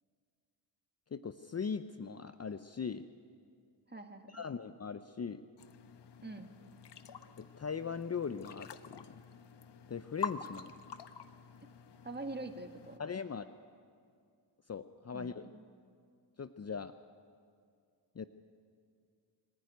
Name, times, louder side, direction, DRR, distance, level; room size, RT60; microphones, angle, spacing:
voice 1, 1.1-3.0 4.3-5.4 7.4-9.2 9.9-10.8 13.0-13.5 14.7-15.5 16.4-16.9 18.1-18.3, left 6 dB, 35° left, 11 dB, 0.7 m, -40 dB
voice 2, 3.9-4.4 6.2-6.5 12.0-13.0 15.1-15.6, right 2 dB, 20° right, 5 dB, 2.0 m, -44 dB
sound 1, 5.6-13.0, left 6 dB, 60° left, 1.0 m, -47 dB
24.0 x 11.5 x 9.5 m, 2.2 s
supercardioid pair, 50°, 48 cm